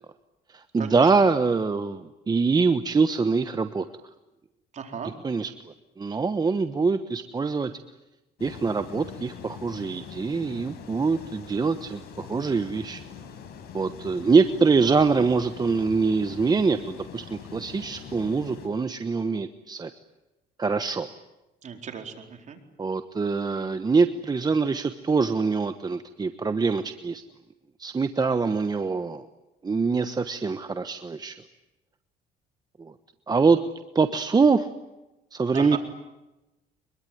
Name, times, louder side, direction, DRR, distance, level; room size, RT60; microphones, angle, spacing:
voice 1, 0.5-3.8 5.2-5.5 6.0-7.7 8.4-13.0 13.7-19.9 20.6-21.1 22.8-27.2 27.8-29.3 29.6-31.4 32.8-32.9 33.3-33.6 33.9-34.7 35.3-35.8, right 4 dB, 25° right, 10 dB, 1.2 m, -24 dB
voice 2, 4.7-5.1 21.6-22.6 35.5-35.8, right 7 dB, 45° right, 5 dB, 4.4 m, -36 dB
sound 1, 8.4-18.7, left 7 dB, 70° left, 5.3 m, -43 dB
24.5 x 22.5 x 9.5 m, 0.99 s
cardioid pair, 110°, 17 cm